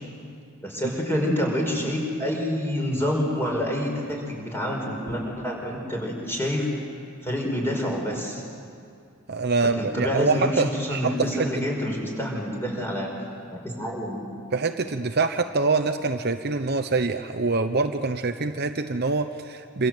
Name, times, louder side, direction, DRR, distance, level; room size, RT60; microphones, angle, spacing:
voice 1, 0.6-6.7 7.2-8.4 9.8-13.1 13.5-14.2, equal, 10° left, 0 dB, 5.3 m, -27 dB
voice 2, 9.3-11.5 14.5-19.9, right 3 dB, 45° right, 8 dB, 0.8 m, -25 dB
27.0 x 27.0 x 7.9 m, 2.4 s
head